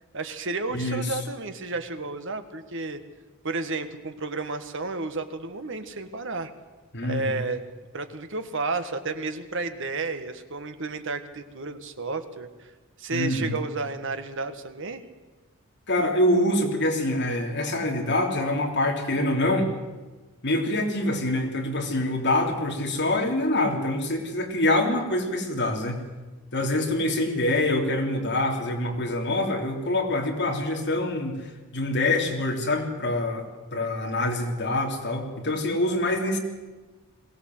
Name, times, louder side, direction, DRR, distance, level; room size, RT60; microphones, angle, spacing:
voice 1, 0.1-3.0 3.4-6.5 7.0-7.6 7.9-12.7 13.0-15.0, right 3 dB, 60° right, 9 dB, 1.6 m, -32 dB
voice 2, 0.7-1.1 6.9-7.4 13.1-13.5 15.9-19.7 20.4-26.0 26.5-31.5 31.7-33.4 33.7-36.4, left 1 dB, 50° left, 1 dB, 3.3 m, -25 dB
21.5 x 17.0 x 7.9 m, 1.3 s
head